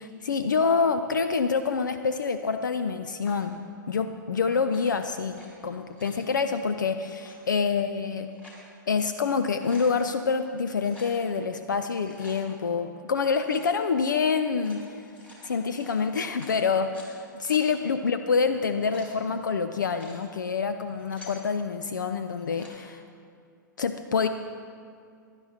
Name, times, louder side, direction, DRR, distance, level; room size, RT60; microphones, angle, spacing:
voice 1, 0.0-3.6 3.9-8.3 8.9-14.8 15.4-23.0 23.8-24.3, left 5 dB, 65° left, 9 dB, 0.5 m, -27 dB
sound 1, 3.2-3.6 4.6-5.5 5.8-6.2 7.1-7.4 8.1-8.7 9.1-9.2 9.4-10.0 10.8-11.2 11.8-12.4 13.4-13.7 14.4-17.1 17.5-17.6 18.5-19.1 19.8-20.2 20.8-21.4 22.3-22.8, left 1 dB, 10° left, 2.1 m, -50 dB
16.0 x 10.5 x 2.8 m, 2.3 s
figure-of-eight pair, 105°, 11 cm